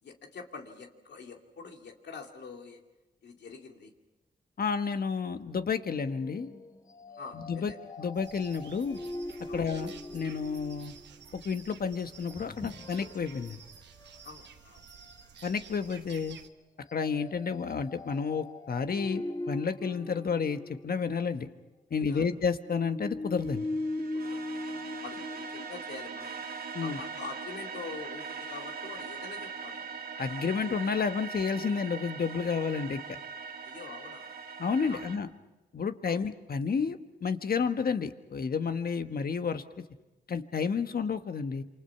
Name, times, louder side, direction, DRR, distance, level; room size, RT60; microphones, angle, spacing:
voice 1, 0.0-2.8 3.2-3.9 7.2-7.8 9.5-9.6 14.2-14.8 21.9-22.2 24.1-26.4 26.8-29.9 33.6-34.3 34.9-35.0 36.1-36.2, left 4 dB, 75° left, 3 dB, 2.5 m, -45 dB
voice 2, 4.6-6.5 7.3-7.7 8.0-9.0 9.5-10.9 11.3-13.6 15.4-16.4 16.9-21.5 21.9-23.7 26.7-27.0 30.2-33.0 34.6-35.3 35.7-39.8 40.3-41.6, left 5 dB, 60° left, 9 dB, 1.4 m, -31 dB
sound 1, 5.9-11.2 12.3-13.6 14.0-14.2 14.8-15.3 16.9-21.3 22.6-25.7, left 2 dB, 20° left, 1.1 m, -40 dB
sound 2, 8.1-16.5, right 7 dB, 85° right, 1.1 m, -51 dB
sound 3, 23.3-35.2, right 5 dB, 60° right, 2.5 m, -41 dB
27.5 x 25.5 x 5.8 m, 1.0 s
cardioid pair, 60°, 18 cm